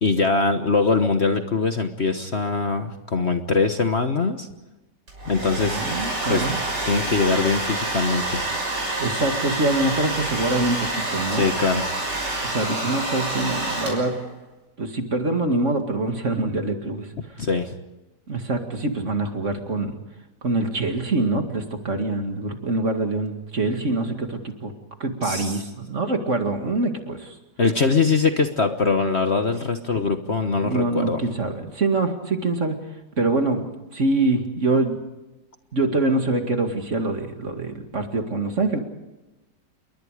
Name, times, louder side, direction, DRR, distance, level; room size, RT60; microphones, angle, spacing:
voice 1, 0.0-4.5 5.3-5.8 6.3-6.4 6.8-8.4 11.3-11.9 17.4-17.7 25.2-25.6 27.6-31.2, left 4 dB, 40° left, 7 dB, 1.3 m, -22 dB
Domestic sounds home sounds, 5.1-14.3, right 2 dB, 70° right, 6.8 m, -27 dB
voice 2, 5.7-6.6 9.0-11.5 12.4-14.2 14.8-17.1 18.3-20.0 20.4-24.7 25.0-27.3 30.6-32.8 33.2-35.0 35.7-38.8, right 2 dB, 40° right, 5 dB, 2.4 m, -24 dB
29.0 x 22.5 x 5.0 m, 1.0 s
omnidirectional pair, 1.9 m